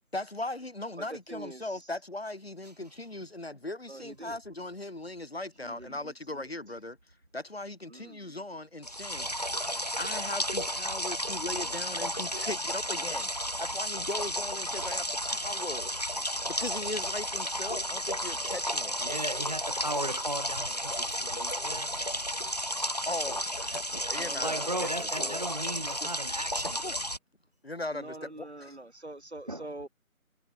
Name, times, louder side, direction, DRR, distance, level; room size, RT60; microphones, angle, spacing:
voice 1, 0.1-7.0 7.3-9.3 10.0-13.3 13.6-15.9 16.5-19.0 23.0-23.8 24.1-25.4 26.0-26.1 26.8-26.9 27.6-28.8, left 2 dB, 45° left, 5.8 m, -38 dB
voice 2, 1.0-1.8 3.9-4.4 5.6-6.5 7.9-8.3 24.2-24.9 25.2-25.9 27.9-29.9, right 2 dB, 50° right, 2.5 m, -45 dB
sound 1, 8.8-27.2, equal, 30° left, 1.4 m, -33 dB
voice 3, 19.0-22.0 23.9-24.1 24.4-26.8 29.5-29.7, right 1 dB, 30° right, 2.6 m, -36 dB
figure-of-eight pair, 170°, 43 cm